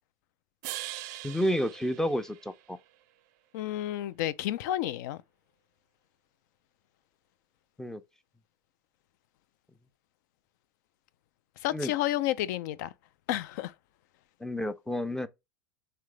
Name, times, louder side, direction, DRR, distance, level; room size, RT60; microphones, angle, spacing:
sound 1, 0.6-3.0, right 15 dB, 60° right, 0.4 m, -42 dB
voice 1, 1.2-2.8 7.8-8.0 11.7-11.9 14.4-15.3, equal, 5° left, 0.5 m, -30 dB
voice 2, 3.5-5.2 11.6-12.9 13.3-13.7, left 13 dB, 65° left, 0.4 m, -30 dB
3.7 x 3.3 x 3.2 m
hypercardioid pair, 95°, 10 cm